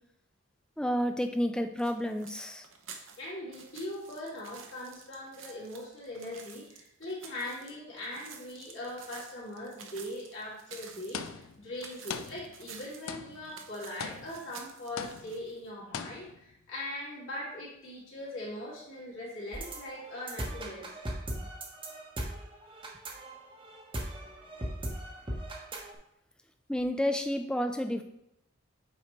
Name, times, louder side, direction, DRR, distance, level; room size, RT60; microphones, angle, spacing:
voice 1, 0.8-2.7 26.7-28.0, equal, 5° left, 7 dB, 0.4 m, -30 dB
sound 1, 1.8-15.7, right 6 dB, 70° right, 0.8 m, -50 dB
voice 2, 3.2-20.9, left 1 dB, 65° left, -7 dB, 2.6 m, -41 dB
sound 2, 11.1-11.7 12.1-12.8 13.1-13.6 14.0-14.6 15.0-15.5 15.9-16.5, left 6 dB, 80° left, 0.5 m, -41 dB
sound 3, 19.5-25.9, right 1 dB, 25° right, 0.9 m, -38 dB
8.2 x 4.4 x 3.1 m, 0.79 s
head